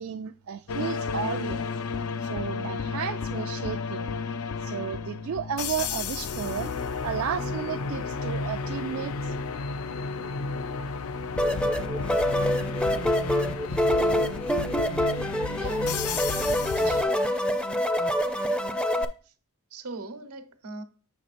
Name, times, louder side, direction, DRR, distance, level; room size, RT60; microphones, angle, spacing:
voice 1, 0.0-1.7 2.2-4.2 4.6-6.7 7.0-9.3, right 8 dB, 65° right, 0.3 m, -33 dB
sound 1, 0.7-17.0, left 4 dB, 75° left, 0.5 m, -32 dB
sound 2, 11.4-19.1, left 1 dB, 5° left, 0.4 m, -26 dB
voice 2, 15.5-16.1 16.8-17.1 19.2-19.3 19.7-20.8, right 3 dB, 85° right, 1.0 m, -40 dB
8.0 x 6.4 x 2.5 m
head